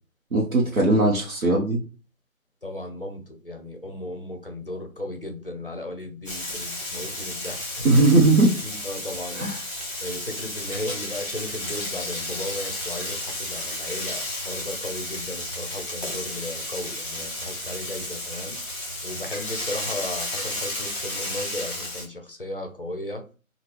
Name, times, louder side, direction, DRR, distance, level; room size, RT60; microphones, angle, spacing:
voice 1, 0.3-1.8 7.8-8.6 9.3-9.6, right 2 dB, 70° right, -3 dB, 0.9 m, -19 dB
voice 2, 2.6-8.1 8.6-9.6 10.0-18.6 19.0-23.2, left 1 dB, 40° left, 5 dB, 0.6 m, -35 dB
Frying (food), 6.3-22.0, left 1 dB, 20° left, 1.4 m, -32 dB
3.5 x 2.4 x 3.0 m, 0.35 s
figure-of-eight pair, 170°, 42 cm